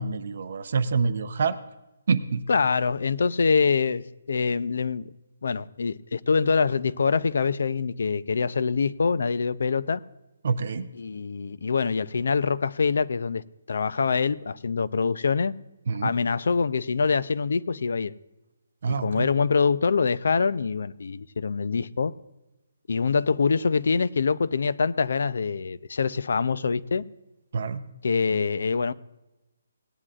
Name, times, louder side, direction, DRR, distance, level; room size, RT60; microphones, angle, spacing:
voice 1, 0.0-1.5 2.1-2.4 10.4-10.8 15.9-16.1 18.8-19.3 27.5-27.8, right 5 dB, 45° right, 0.6 m, -26 dB
voice 2, 2.5-5.0 5.4-10.0 10.9-13.4 13.7-15.5 16.0-18.1 18.9-22.1 22.9-27.0 28.0-28.9, left 5 dB, 60° left, 0.4 m, -25 dB
18.0 x 9.9 x 2.4 m
hypercardioid pair, 175°, 0 cm